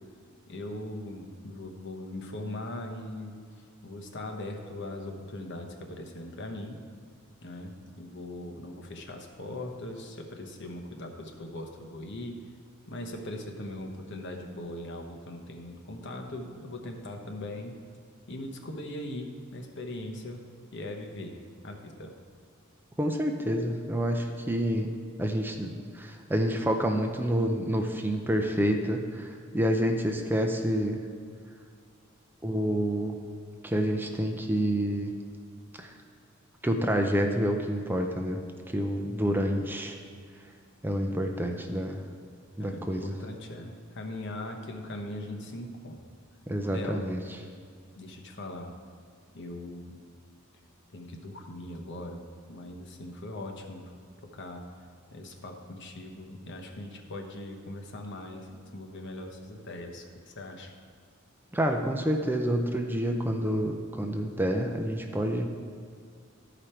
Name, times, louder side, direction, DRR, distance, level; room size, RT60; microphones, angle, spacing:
voice 1, 0.5-3.4 3.8-6.8 7.4-12.4 12.9-17.8 18.3-20.4 20.7-22.1 42.6-46.0 46.7-47.1 48.0-48.8 49.3-50.0 50.9-53.9 54.2-54.6 55.1-60.7, left 1 dB, 60° left, 3 dB, 1.0 m, -40 dB
voice 2, 23.0-24.9 25.2-31.0 32.4-33.2 33.6-35.1 35.8-35.9 36.6-39.9 40.8-42.0 42.6-43.1 46.5-47.2 61.5-65.5, equal, 10° right, 3 dB, 0.5 m, -28 dB
13.0 x 5.1 x 4.4 m, 2.2 s
head